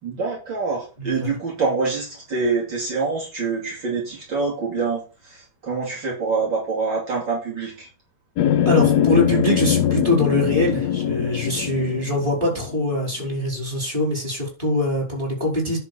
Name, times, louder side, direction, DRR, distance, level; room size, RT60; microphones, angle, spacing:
voice 1, 0.0-7.9, right 4 dB, 65° right, -4 dB, 3.5 m, -26 dB
voice 2, 1.0-1.3 8.6-15.8, left 1 dB, 25° right, -1 dB, 4.9 m, -23 dB
sound 1, 8.4-12.9, left 10 dB, 65° left, 1.1 m, -22 dB
10.5 x 4.4 x 6.8 m, 0.34 s
omnidirectional pair, 2.2 m